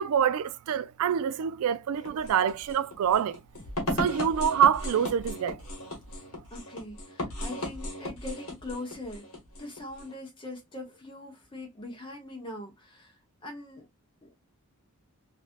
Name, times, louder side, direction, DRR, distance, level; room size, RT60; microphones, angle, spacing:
voice 1, 0.0-3.4 3.9-5.6, right 8 dB, 80° right, 0.3 m, -26 dB
sound 1, 2.0-10.1, left 1 dB, 70° left, 1.2 m, -36 dB
voice 2, 6.5-9.2 9.6-13.1 13.4-13.9 14.2-14.3, left 2 dB, 20° left, 1.0 m, -41 dB
3.2 x 2.6 x 2.4 m
head